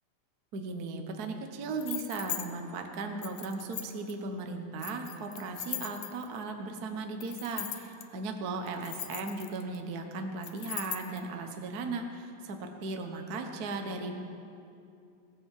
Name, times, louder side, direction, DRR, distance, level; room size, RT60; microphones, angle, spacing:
voice 1, 0.5-14.1, right 3 dB, 60° right, 4 dB, 0.9 m, -37 dB
sound 1, 1.8-2.5 3.2-4.1 4.8-6.4 7.2-8.0 8.7-9.8 10.4-11.2, left 11 dB, 75° left, 2.1 m, -39 dB
18.0 x 10.5 x 7.4 m, 2.6 s
omnidirectional pair, 3.4 m